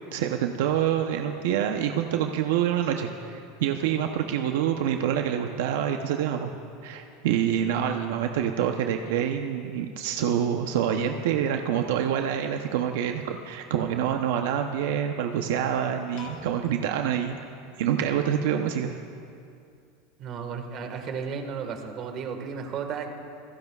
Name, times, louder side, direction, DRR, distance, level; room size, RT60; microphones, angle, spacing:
voice 1, 0.1-6.5 6.8-17.4 17.8-19.0, right 9 dB, 80° right, 4 dB, 0.8 m, -26 dB
Piano, 16.2-18.4, left 3 dB, 50° left, 3.0 m, -48 dB
voice 2, 20.2-23.1, right 6 dB, 40° right, 5 dB, 1.6 m, -34 dB
27.5 x 16.0 x 2.4 m, 2.5 s
supercardioid pair, 150°, 0 cm